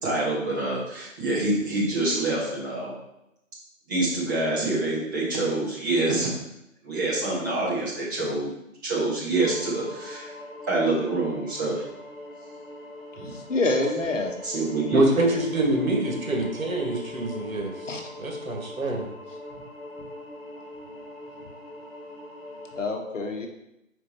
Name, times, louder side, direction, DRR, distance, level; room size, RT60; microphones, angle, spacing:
voice 1, 0.0-2.9 3.9-6.3 6.8-8.5 8.8-10.3 10.7-11.8 13.2-13.3 14.4-15.0, right 2 dB, 15° right, -6 dB, 1.2 m, -26 dB
sound 1, 9.4-22.9, left 2 dB, 20° left, 1.9 m, -41 dB
voice 2, 13.2-14.4 17.9-18.0 22.8-23.5, left 2 dB, 65° left, 3 dB, 1.2 m, -26 dB
voice 3, 14.9-17.9 18.2-19.1, right 1 dB, 80° right, 2 dB, 1.6 m, -25 dB
4.8 x 4.5 x 4.3 m, 0.85 s
figure-of-eight pair, 155°, 40 cm